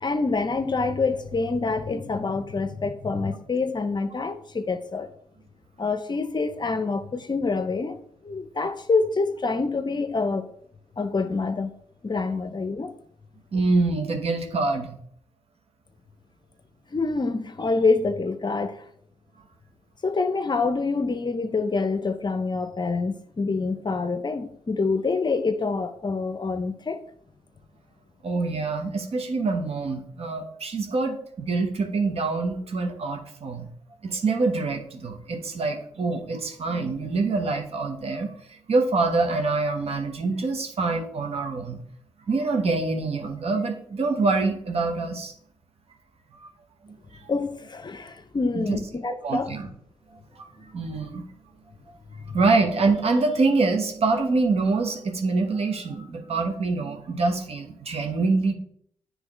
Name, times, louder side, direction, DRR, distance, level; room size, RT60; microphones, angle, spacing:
voice 1, 0.0-5.1 5.8-8.0 8.2-10.5 11.0-11.7 12.0-12.9 16.9-18.8 20.0-27.0 47.3-49.5, left 4 dB, 35° left, 0.7 m, -26 dB
voice 2, 13.5-15.0 28.2-33.7 34.0-41.8 42.3-45.3 46.9-47.0 48.5-48.8 49.2-49.7 50.4-50.5 50.7-51.2 52.3-58.5, right 3 dB, 55° right, 1.2 m, -25 dB
9.7 x 3.3 x 3.1 m
hypercardioid pair, 45°, 13 cm